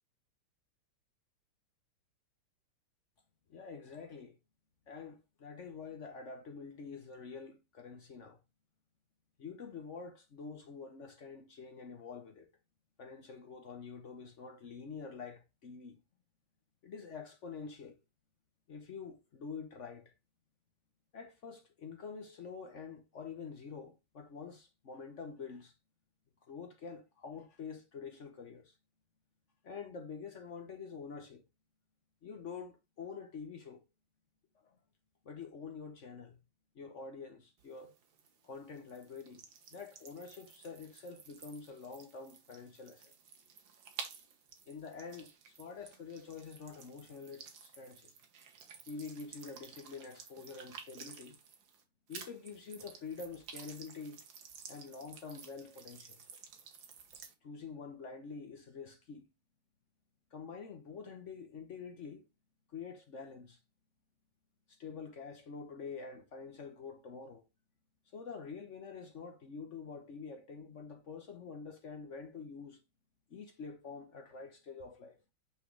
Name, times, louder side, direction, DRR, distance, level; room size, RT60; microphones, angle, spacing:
voice 1, 3.5-4.4 4.9-8.4 9.4-12.5 13.0-16.0 16.8-18.0 18.7-20.1 21.1-25.7 26.5-28.8 29.6-31.4 32.2-33.8 34.5-34.8 35.2-36.4 36.7-37.9 38.4-39.4 39.7-43.1 44.7-48.1 48.9-51.4 52.1-54.2 54.7-56.2 57.4-59.3 60.3-62.3 62.7-63.6 64.7-67.5 68.1-72.8 73.3-75.2, left 5 dB, 55° left, 0.8 m, -47 dB
sound 1, 37.6-51.8 52.1-57.3, right 6 dB, 60° right, 1.8 m, -53 dB
6.1 x 5.9 x 3.1 m
omnidirectional pair, 2.4 m